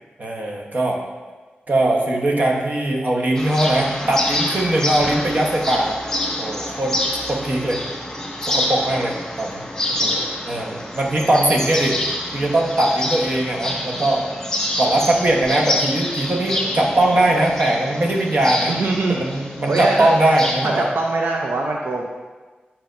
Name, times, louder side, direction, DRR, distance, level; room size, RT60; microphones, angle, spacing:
voice 1, 0.2-1.0 1.7-6.0 6.4-7.0 7.3-7.8 8.4-9.6 10.4-12.0 12.3-14.3 14.8-18.8 19.1-20.8, right 1 dB, 50° right, -1 dB, 1.1 m, -20 dB
sound 1, 3.3-20.5, left 1 dB, 15° left, 1.5 m, -27 dB
voice 2, 18.7-19.2 19.7-20.1 20.6-22.0, right 3 dB, 90° right, 0 dB, 0.6 m, -23 dB
8.7 x 5.8 x 2.6 m, 1.3 s
wide cardioid pair, 95°, 4 cm